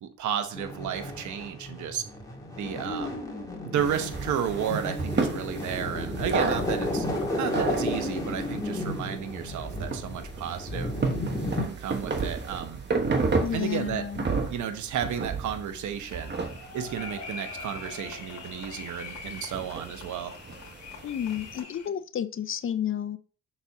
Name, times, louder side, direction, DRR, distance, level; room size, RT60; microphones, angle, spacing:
voice 1, 0.0-2.0 2.6-3.2 3.7-7.1 7.4-10.9 11.6-12.8 13.5-14.1 14.5-16.4 16.7-20.4, right 8 dB, 75° right, 1.0 m, -33 dB
sound 1, 0.5-11.7, left 1 dB, 10° left, 2.0 m, -33 dB
sound 2, 3.8-21.6, right 4 dB, 35° right, 1.3 m, -33 dB
voice 2, 13.4-14.2 21.0-23.2, left 9 dB, 45° left, 0.5 m, -31 dB
sound 3, 16.0-21.9, left 4 dB, 60° left, 1.9 m, -42 dB
6.2 x 4.2 x 3.6 m
cardioid pair, 90°, 30 cm